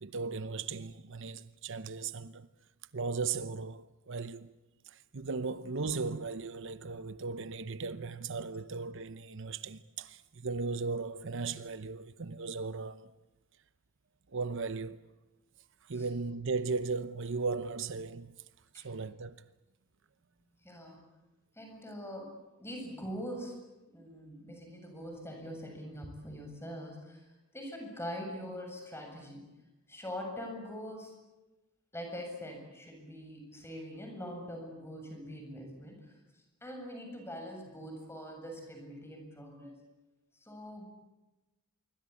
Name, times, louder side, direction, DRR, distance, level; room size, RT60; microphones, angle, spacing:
voice 1, 0.0-2.5 2.9-4.5 4.9-13.1 14.3-15.0 15.9-18.3 18.7-19.4, right 4 dB, 60° right, 0.8 m, -37 dB
voice 2, 20.6-21.0 21.5-23.5 23.9-27.3 27.5-29.5 29.9-31.2 31.9-36.2 36.6-39.8 40.4-40.8, equal, 10° left, 7.6 m, -43 dB
26.5 x 24.0 x 8.5 m
head